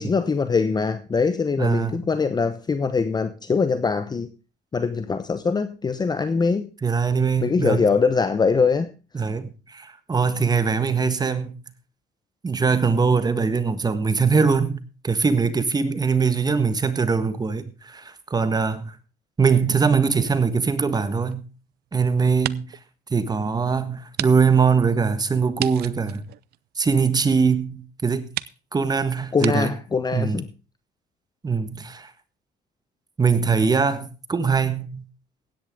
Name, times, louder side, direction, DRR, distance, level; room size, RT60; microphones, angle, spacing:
voice 1, 0.0-4.3 4.7-6.7 7.4-8.9 29.3-30.5, left 5 dB, 25° left, 0.9 m, -22 dB
voice 2, 1.6-2.0 6.8-7.9 9.1-11.5 12.4-19.0 19.4-21.4 21.9-22.8 23.1-26.2 26.7-28.3 28.7-29.7 30.1-30.4 31.4-32.1 33.2-35.0, right 5 dB, 25° right, 1.5 m, -22 dB
sound 1, 20.9-21.9 22.3-22.9 23.3-23.4 24.1-24.3 24.6-24.7 25.6-27.1 27.8-27.9 28.3-28.6 29.4-29.5, right 15 dB, 70° right, 0.6 m, -33 dB
16.0 x 10.5 x 3.7 m
cardioid pair, 110°, 17 cm